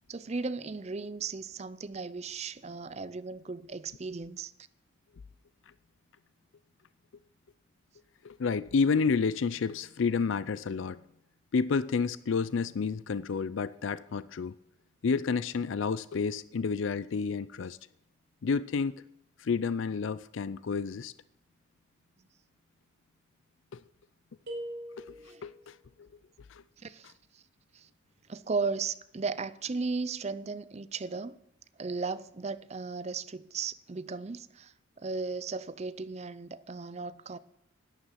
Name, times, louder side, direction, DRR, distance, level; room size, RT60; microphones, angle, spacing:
voice 1, 0.1-4.5 25.2-25.5 26.8-27.1 27.3-27.4 27.7-27.9 28.3-31.4 31.8-37.4, right 4 dB, 30° right, 0.5 m, -36 dB
voice 2, 8.2-11.0 11.5-14.5 15.0-17.8 18.4-19.0 19.4-21.1 25.0-25.2 25.4-26.1 26.5-26.6, left 5 dB, 70° left, 0.4 m, -30 dB
sound 1, 24.5-25.6, right 1 dB, 50° right, 5.1 m, -41 dB
11.5 x 9.9 x 7.4 m
head